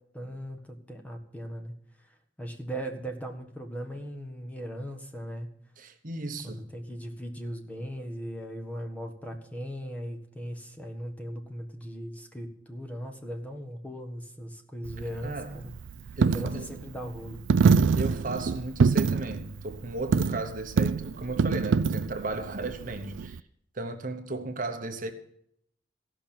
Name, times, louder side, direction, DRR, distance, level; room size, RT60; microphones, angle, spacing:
voice 1, 0.1-1.7 2.0-5.5 6.4-15.7 16.0-17.4, equal, 10° left, 1.6 m, -38 dB
voice 2, 5.8-6.7 15.2-15.6 16.2-16.7 18.0-23.4 23.7-25.1, right 2 dB, 45° right, 1.1 m, -35 dB
Coin (dropping), 14.8-23.4, right 5 dB, 85° right, 0.4 m, -26 dB
15.5 x 6.1 x 8.6 m
head